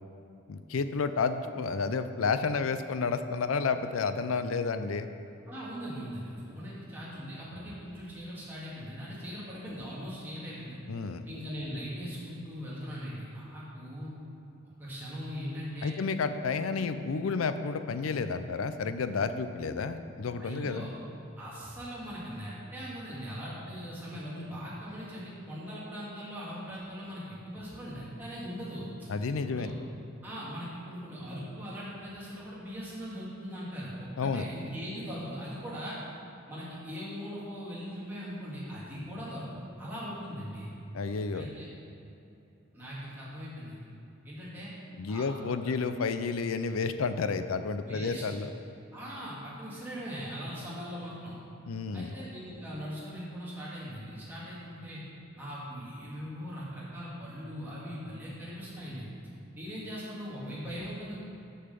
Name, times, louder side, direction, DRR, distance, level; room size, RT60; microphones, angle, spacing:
voice 1, 0.5-5.1 10.9-11.2 15.8-20.9 29.1-29.7 34.2-34.4 40.9-41.5 45.0-48.5 51.6-52.1, left 4 dB, 85° left, 10 dB, 0.5 m, -31 dB
voice 2, 5.5-10.8 11.3-14.1 14.8-15.9 20.4-20.9 21.4-29.1 29.4-29.8 30.2-36.0 36.5-39.4 39.8-40.7 41.3-41.7 42.7-43.8 44.2-44.7 45.1-45.3 47.9-48.4 48.9-51.4 51.9-55.0 55.4-59.1 59.6-61.2, equal, 10° right, -9 dB, 2.1 m, -40 dB
6.7 x 5.5 x 6.7 m, 2.9 s
head